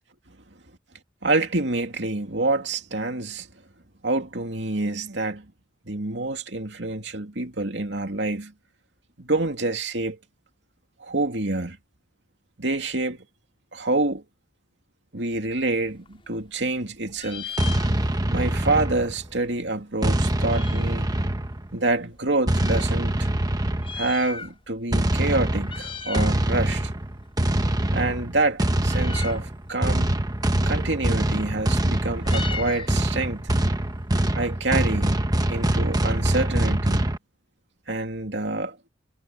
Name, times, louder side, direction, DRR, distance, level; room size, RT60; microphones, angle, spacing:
voice 1, 1.2-3.5 4.0-5.5 5.8-8.5 9.2-10.2 11.0-11.8 12.6-13.2 13.7-14.2 15.1-17.6 18.3-21.1 21.7-23.3 23.9-26.9 27.9-30.1 30.6-33.5 34.3-35.2 35.5-37.1 37.9-38.8, right 2 dB, 70° right, 2.9 m, -27 dB
Meow, 15.8-16.8 17.1-18.4 18.7-18.8 18.9-21.1 21.7-22.9 23.7-24.8 25.1-25.3 25.6-26.4 26.7-34.6, left 6 dB, 30° left, 6.0 m, -39 dB
sound 1, 17.6-19.3 20.0-21.7 22.5-24.1 24.9-37.2, right 1 dB, 20° right, 1.1 m, -24 dB
head